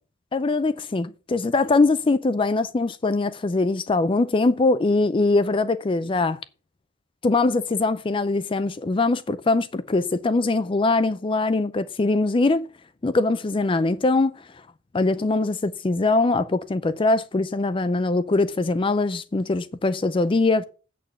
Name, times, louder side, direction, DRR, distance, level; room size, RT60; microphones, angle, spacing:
voice 1, 0.3-6.4 7.2-12.7 13.0-14.4 14.9-20.6, left 3 dB, 25° left, 0.4 m, -22 dB
8.4 x 6.7 x 5.9 m
head